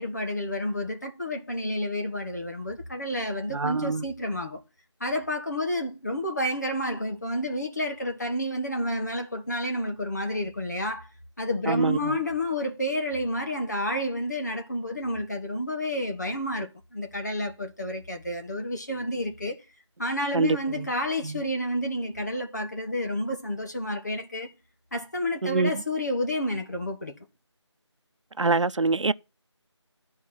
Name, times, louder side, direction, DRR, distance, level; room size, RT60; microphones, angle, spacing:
voice 1, 0.0-4.6 5.0-11.1 11.4-19.6 20.0-24.5 24.9-27.1, left 1 dB, 35° left, 1.4 m, -30 dB
voice 2, 3.5-4.0 11.7-12.2 20.3-20.9 21.2-21.4 25.4-25.7 28.4-29.1, right 3 dB, 85° right, 0.7 m, -25 dB
12.0 x 4.7 x 5.8 m
figure-of-eight pair, 175°, 15 cm